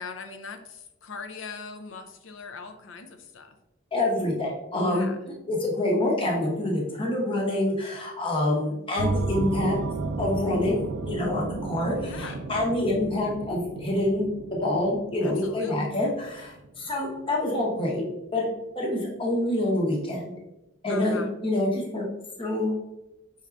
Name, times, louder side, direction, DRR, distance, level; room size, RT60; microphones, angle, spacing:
voice 1, 0.0-3.6 4.8-5.2 11.9-12.4 15.2-16.0 20.9-21.3, left 4 dB, 70° left, 7 dB, 0.5 m, -41 dB
voice 2, 3.9-5.1 5.5-9.8 10.2-18.0 18.3-18.5 18.8-20.3 20.8-22.0 22.4-22.8, left 1 dB, 25° left, -2 dB, 0.9 m, -26 dB
sound 1, 9.0-17.3, right 3 dB, 75° right, 0.4 m, -33 dB
5.6 x 3.6 x 2.4 m, 0.91 s
head